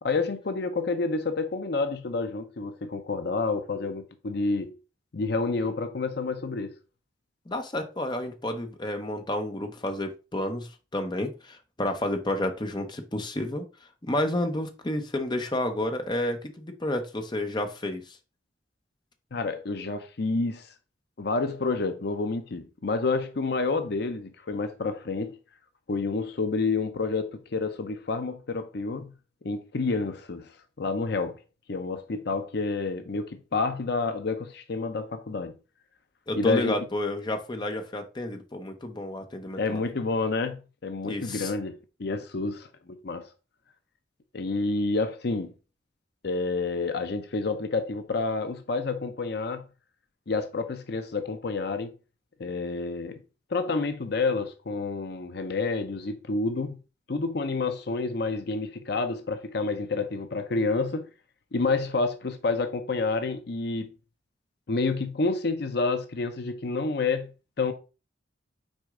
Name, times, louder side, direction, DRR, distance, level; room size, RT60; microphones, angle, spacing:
voice 1, 0.0-4.8 5.1-6.8 19.3-20.7 21.2-25.3 25.9-29.1 29.4-30.5 30.8-31.4 31.7-35.6 36.3-36.8 39.6-43.3 44.3-45.5 46.2-49.7 50.3-51.9 52.4-53.2 53.5-56.8 57.1-61.1 61.5-63.9 64.7-67.7, left 3 dB, 60° left, 0.6 m, -29 dB
voice 2, 7.5-13.6 14.0-18.2 36.3-39.8 41.0-41.5, left 1 dB, 25° left, 0.8 m, -30 dB
6.2 x 4.4 x 3.7 m
head